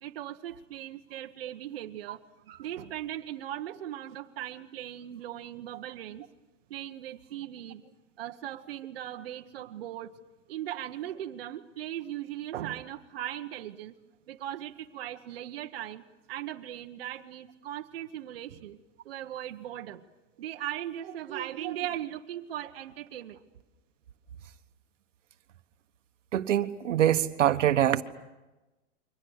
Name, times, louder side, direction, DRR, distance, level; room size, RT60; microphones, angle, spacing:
voice 1, 0.0-6.3 6.7-7.8 8.2-10.1 10.5-13.9 14.3-20.0 20.4-23.4, right 12 dB, 50° right, 5 dB, 1.2 m, -38 dB
voice 2, 26.3-28.0, right 11 dB, 80° right, 9 dB, 1.4 m, -24 dB
29.0 x 24.0 x 6.5 m, 1.1 s
supercardioid pair, 175°, 37 cm